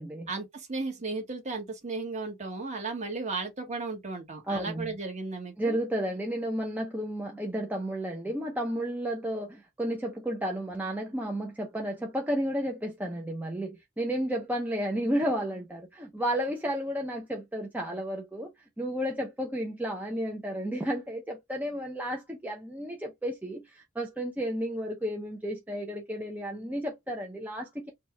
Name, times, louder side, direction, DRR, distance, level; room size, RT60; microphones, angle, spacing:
voice 1, 0.3-5.8, right 3 dB, 35° right, 1.5 m, -35 dB
voice 2, 4.5-5.0 5.6-18.5 18.8-27.9, equal, 10° right, 0.7 m, -32 dB
4.4 x 2.4 x 3.0 m
head